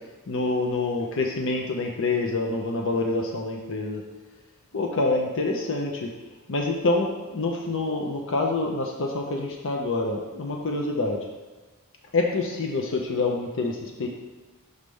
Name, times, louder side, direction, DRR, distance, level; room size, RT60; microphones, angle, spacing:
voice 1, 0.3-4.0 4.7-6.1 6.5-11.3 12.1-14.1, left 3 dB, 60° left, 1 dB, 0.7 m, -26 dB
6.5 x 3.3 x 5.3 m, 1.2 s
head